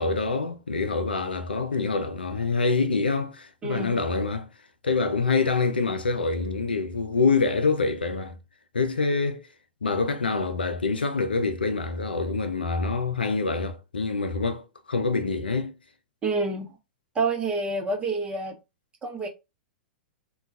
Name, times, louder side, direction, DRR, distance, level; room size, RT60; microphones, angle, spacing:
voice 1, 0.0-4.5 4.8-8.4 8.7-9.5 9.8-15.7, left 4 dB, 85° left, 0.5 m, -26 dB
voice 2, 3.6-4.0 16.2-16.8 17.1-18.6 19.0-19.3, right 3 dB, 20° right, 0.8 m, -28 dB
2.3 x 2.3 x 3.9 m
figure-of-eight pair, 105°, 5 cm